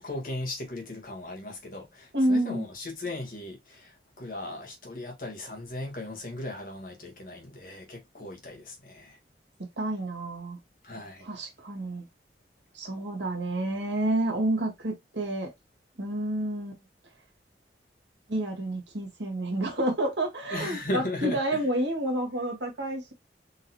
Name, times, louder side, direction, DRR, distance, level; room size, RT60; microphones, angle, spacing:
voice 1, 0.0-9.2 10.8-11.3 20.5-21.6, left 1 dB, 50° left, 1.5 m, -37 dB
voice 2, 2.1-2.6 9.8-10.6 11.2-12.0 12.7-15.5 16.0-16.8 18.3-23.1, right 1 dB, 85° right, 1.8 m, -29 dB
4.0 x 3.9 x 2.8 m
head